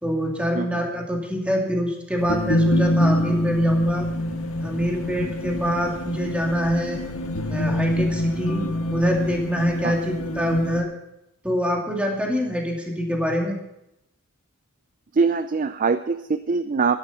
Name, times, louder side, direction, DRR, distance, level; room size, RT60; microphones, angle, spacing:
voice 1, 0.0-4.1 4.6-7.0 7.5-10.9 11.4-13.6, equal, 5° right, 0 dB, 2.4 m, -25 dB
sound 1, 2.2-10.8, left 1 dB, 90° left, 1.6 m, -25 dB
voice 2, 15.1-17.0, right 4 dB, 40° right, 12 dB, 0.4 m, -23 dB
13.0 x 11.0 x 5.7 m, 0.84 s
head